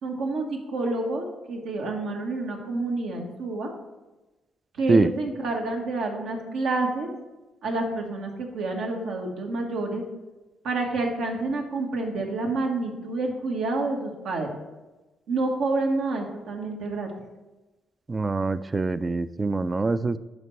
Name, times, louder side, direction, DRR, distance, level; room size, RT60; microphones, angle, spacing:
voice 1, 0.0-3.7 4.8-7.1 7.6-10.0 10.6-14.5 15.3-17.1, right 2 dB, 80° right, 1 dB, 1.5 m, -28 dB
voice 2, 18.1-20.2, right 3 dB, 25° right, 14 dB, 0.4 m, -24 dB
11.0 x 5.1 x 3.2 m, 1.1 s
cardioid pair, 90°, 0 cm